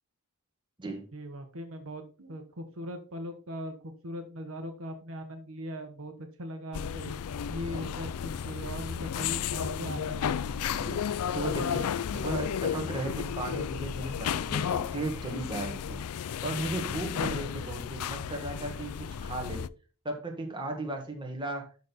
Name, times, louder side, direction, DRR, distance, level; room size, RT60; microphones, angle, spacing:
voice 1, 1.1-7.1 7.5-10.2, equal, 65° right, 6 dB, 1.2 m, -40 dB
sound 1, 6.7-19.7, left 8 dB, 90° left, 0.4 m, -33 dB
voice 2, 10.8-16.0 16.4-19.7 20.1-21.7, right 2 dB, 20° right, 2 dB, 1.7 m, -36 dB
11.5 x 4.2 x 4.1 m, 0.37 s
head